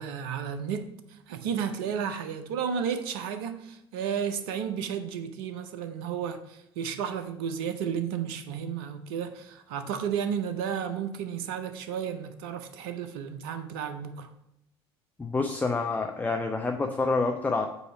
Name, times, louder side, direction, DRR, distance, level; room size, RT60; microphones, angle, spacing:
voice 1, 0.0-14.3, right 7 dB, 65° right, 0.7 m, -33 dB
voice 2, 15.2-17.7, left 3 dB, 10° left, 0.6 m, -27 dB
8.0 x 2.8 x 5.7 m
figure-of-eight pair, 65°, 13 cm